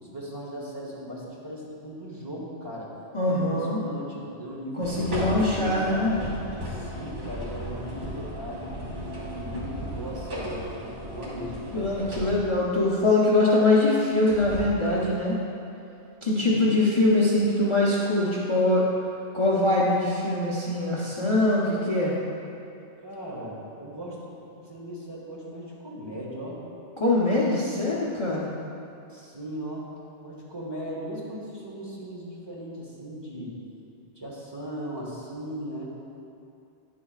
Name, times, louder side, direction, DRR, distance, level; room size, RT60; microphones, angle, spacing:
voice 1, 0.0-2.9 3.2-6.2 6.6-8.7 8.9-11.6 16.4-16.8 23.0-24.3 24.6-26.6 29.1-29.9 30.2-33.6 34.1-35.9, equal, 25° right, -5 dB, 1.1 m, -38 dB
voice 2, 3.1-3.8 4.8-6.1 11.7-15.4 16.2-18.9 19.3-22.2 27.0-28.5, left 2 dB, 30° left, -5 dB, 0.7 m, -23 dB
sound 1, 4.8-12.7 14.3-14.7, equal, 80° right, 2.1 m, -35 dB
10.5 x 7.3 x 2.4 m, 2.7 s
omnidirectional pair, 1.2 m